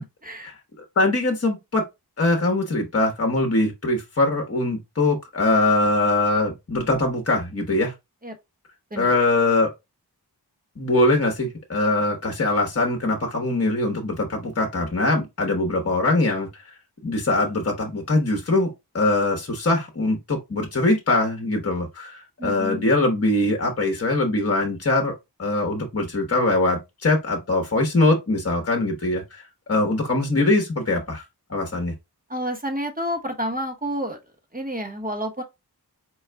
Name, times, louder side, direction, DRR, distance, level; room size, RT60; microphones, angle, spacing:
voice 1, 0.4-1.8 2.2-7.9 9.0-9.7 10.8-16.5 17.0-31.2 31.5-31.9, left 2 dB, 40° left, 1.0 m, -22 dB
voice 2, 22.4-22.9 32.3-34.2 34.5-35.4, equal, 20° right, 1.1 m, -29 dB
4.7 x 2.3 x 3.3 m
wide cardioid pair, 70°, 39 cm